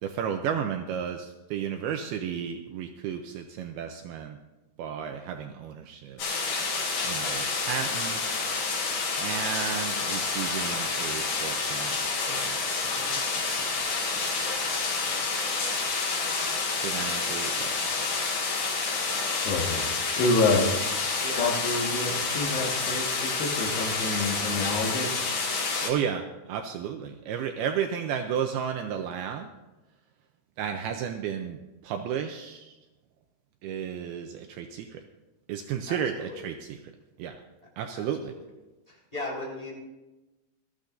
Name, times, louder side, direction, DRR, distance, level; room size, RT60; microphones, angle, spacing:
voice 1, 0.0-4.4 4.8-6.3 7.0-8.2 9.2-13.7 14.1-14.5 16.8-17.8 25.8-29.5 30.6-32.8 33.6-35.0 35.5-36.8 37.2-37.4 37.8-38.3, right 8 dB, 85° right, 5 dB, 2.4 m, -33 dB
sound 1, 6.2-25.9, left 4 dB, 85° left, 5.3 m, -29 dB
voice 2, 19.4-19.9 20.2-20.8 21.4-25.3, left 3 dB, 70° left, -1 dB, 3.6 m, -27 dB
voice 3, 21.2-21.6 27.6-27.7 35.9-36.4 37.9-38.4 38.9-39.7, left 1 dB, 10° left, -4 dB, 3.7 m, -38 dB
21.0 x 13.5 x 2.6 m, 1.1 s
omnidirectional pair, 5.0 m